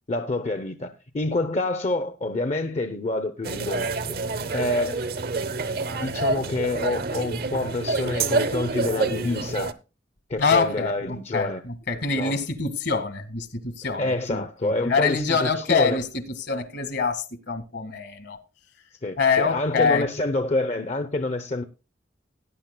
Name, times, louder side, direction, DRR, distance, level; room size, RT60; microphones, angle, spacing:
voice 1, 0.1-4.2 4.5-5.0 5.9-9.7 10.3-11.6 12.1-12.4 14.0-16.0 19.0-21.6, left 2 dB, 40° left, 0.7 m, -27 dB
sound 1, 3.4-9.7, right 3 dB, 55° right, 0.7 m, -27 dB
voice 2, 10.4-18.4 19.2-20.1, left 4 dB, 65° left, 1.8 m, -25 dB
18.0 x 9.9 x 2.2 m
head